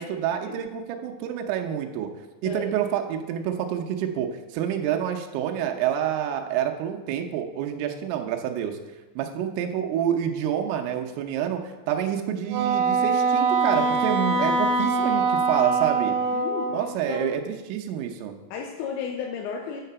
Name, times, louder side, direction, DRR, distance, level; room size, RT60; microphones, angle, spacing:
voice 1, 0.0-2.1 2.4-8.8 9.2-16.1 16.7-18.3, right 10 dB, 85° right, 4 dB, 3.3 m, -28 dB
Wind instrument woodwind instrument, 12.5-17.0, right 4 dB, 65° right, 2.9 m, -23 dB
voice 2, 16.3-16.7 17.1-17.4 18.5-19.8, left 6 dB, 85° left, 0 dB, 3.4 m, -33 dB
8.1 x 6.6 x 6.7 m, 1.1 s
omnidirectional pair, 5.8 m